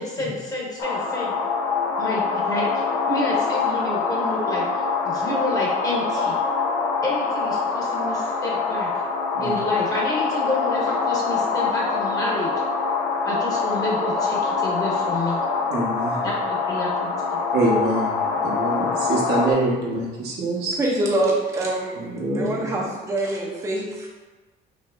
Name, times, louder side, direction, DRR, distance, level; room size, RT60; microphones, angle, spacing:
voice 1, 0.0-1.3 2.0-6.4 7.0-8.9 9.4-12.5 13.2-15.4 16.2-17.4 18.8-18.9, left 1 dB, 20° left, -3 dB, 1.1 m, -29 dB
sound 1, 0.8-19.5, left 5 dB, 80° left, 0.6 m, -24 dB
voice 2, 15.7-16.2 17.5-18.1 18.4-20.8 22.2-22.5, right 2 dB, 80° right, -4 dB, 1.2 m, -24 dB
voice 3, 20.7-22.1 22.3-24.1, right 1 dB, 20° right, -3 dB, 0.6 m, -25 dB
5.2 x 2.9 x 2.5 m, 1.3 s
cardioid pair, 110°, 17 cm